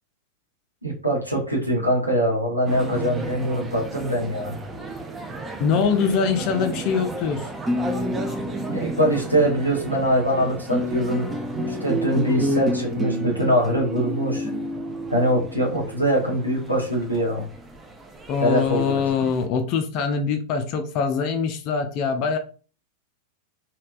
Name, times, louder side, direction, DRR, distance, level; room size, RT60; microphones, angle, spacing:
voice 1, 0.8-4.6 8.7-14.5 15.1-17.5 18.4-19.0, equal, 90° right, -1 dB, 1.1 m, -23 dB
sound 1, 2.7-19.5, right 1 dB, 15° right, 0.6 m, -31 dB
voice 2, 5.6-7.5 18.3-22.4, left 6 dB, 40° left, 5 dB, 0.4 m, -23 dB
3.2 x 2.8 x 2.5 m, 0.37 s
figure-of-eight pair, 90°, 0 cm